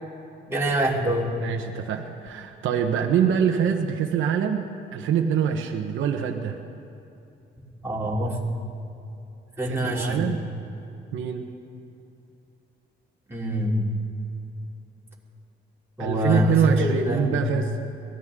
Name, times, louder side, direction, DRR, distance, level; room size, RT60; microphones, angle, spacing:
voice 1, 0.5-1.4 7.8-8.4 9.6-10.3 13.3-13.9 16.0-17.4, equal, 10° right, -4 dB, 3.1 m, -25 dB
voice 2, 1.4-6.6 9.7-10.4 11.1-11.5 16.0-17.8, right 7 dB, 80° right, 3 dB, 1.1 m, -25 dB
22.5 x 15.5 x 3.7 m, 2.8 s
cardioid pair, 90°, 20 cm